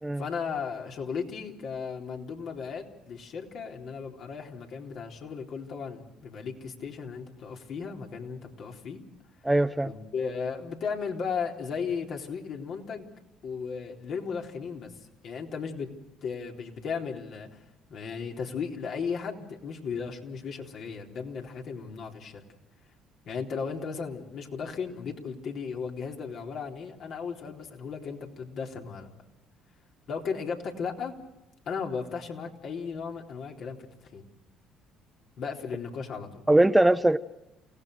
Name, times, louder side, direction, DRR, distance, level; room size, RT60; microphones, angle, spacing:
voice 1, 0.2-9.0 9.8-13.1 13.4-14.9 15.2-15.9 16.2-17.6 17.9-22.4 23.3-29.1 30.1-31.1 31.7-33.8 34.0-34.3 35.4-36.4, left 5 dB, 60° left, 1 dB, 3.8 m, -35 dB
voice 2, 9.4-9.9 36.5-37.2, right 1 dB, 10° right, 12 dB, 0.9 m, -21 dB
29.0 x 17.5 x 6.6 m, 0.94 s
hypercardioid pair, 60°, 0 cm